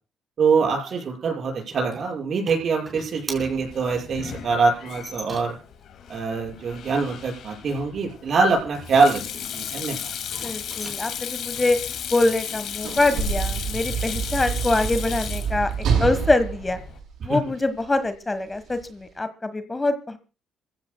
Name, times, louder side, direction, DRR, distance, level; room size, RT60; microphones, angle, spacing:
voice 1, 0.4-5.6 6.1-10.1 17.2-17.4, right 4 dB, 55° right, 1 dB, 6.0 m, -24 dB
sound 1, 0.8-5.8 10.2-13.2, right 2 dB, 20° right, 4.5 m, -42 dB
Sink (filling or washing), 3.3-17.0, left 8 dB, 75° left, 2.4 m, -35 dB
voice 2, 10.4-11.8 12.1-15.7 16.0-16.8 17.2-20.2, left 2 dB, 20° left, 11 dB, 1.3 m, -24 dB
Sliding door / Slam, 12.4-17.8 18.7-18.8, right 6 dB, 75° right, 7.6 m, -27 dB
26.5 x 15.0 x 2.2 m, 0.33 s
cardioid pair, 90°, 0 cm